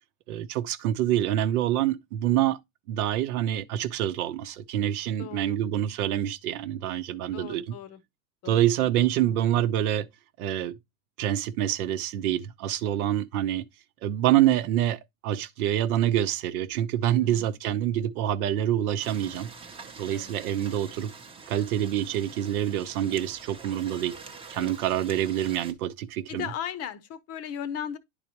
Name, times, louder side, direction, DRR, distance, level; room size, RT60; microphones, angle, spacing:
voice 1, 0.3-2.6 2.9-7.7 8.5-10.1 10.4-10.8 11.2-13.6 14.0-19.5 20.0-21.1 21.5-24.2 24.5-26.5, right 11 dB, 80° right, 0.9 m, -26 dB
voice 2, 5.2-5.6 7.3-8.0 8.4-9.4 17.2-17.6 20.1-20.3 24.5-24.8 26.3-28.0, left 9 dB, 35° left, 0.7 m, -37 dB
sound 1, 19.0-25.7, right 4 dB, 10° right, 0.7 m, -46 dB
10.0 x 4.1 x 2.9 m
supercardioid pair, 140°, 43 cm